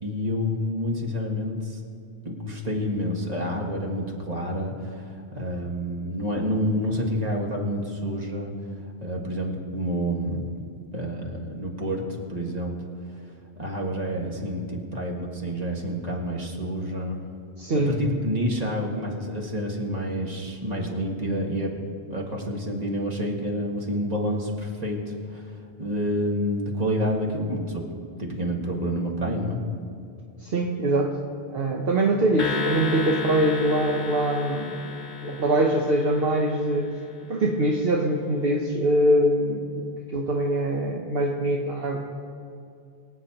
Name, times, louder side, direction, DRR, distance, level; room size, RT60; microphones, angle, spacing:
voice 1, 0.0-1.8 2.3-8.5 8.8-10.5 10.9-12.0 12.3-12.7 13.6-17.2 17.9-21.7 22.1-27.8 28.2-29.6, equal, 35° right, -1 dB, 1.7 m, -28 dB
voice 2, 17.6-18.0 30.4-31.2 31.5-34.7 35.2-36.9 37.3-42.0, right 1 dB, 60° right, 0 dB, 1.0 m, -23 dB
sound 1, 32.4-36.9, left 3 dB, 45° left, 1.0 m, -32 dB
24.0 x 8.5 x 2.9 m, 2.5 s
omnidirectional pair, 1.1 m